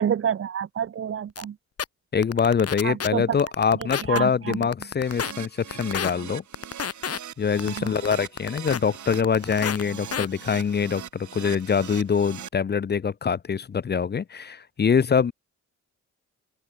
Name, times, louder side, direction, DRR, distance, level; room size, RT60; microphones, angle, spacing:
voice 1, 0.0-1.5 2.8-3.2 4.1-4.6 7.6-7.9, right 8 dB, 45° right, 0.7 m, -28 dB
sound 1, 1.4-1.5 1.8-1.9 2.2-3.1 3.4-4.2 4.5-5.3 5.7-6.1 6.5-7.2 7.6-8.8 9.1-9.8 10.1-10.3, left 7 dB, 55° left, 1.6 m, -29 dB
voice 2, 2.1-6.4 7.4-15.3, left 6 dB, 35° left, 0.6 m, -24 dB
Keyboard (musical), 5.0-12.5, right 9 dB, 75° right, 4.2 m, -41 dB
open air
cardioid pair, 80°, 30 cm